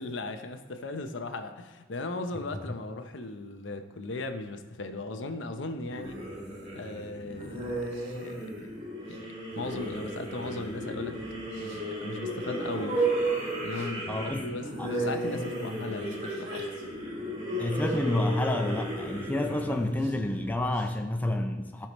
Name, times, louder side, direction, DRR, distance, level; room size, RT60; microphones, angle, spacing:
voice 1, 0.0-6.2 6.7-7.8 8.2-8.7 9.1-9.3 9.5-11.1 11.6-13.0 13.6-16.7, left 2 dB, 70° left, 7 dB, 0.7 m, -37 dB
sound 1, 5.9-20.8, right 1 dB, 35° right, 2.4 m, -34 dB
voice 2, 14.1-14.5 14.8-14.9 17.6-21.9, left 1 dB, 10° left, 4 dB, 0.4 m, -29 dB
15.5 x 5.7 x 3.1 m, 1.3 s
head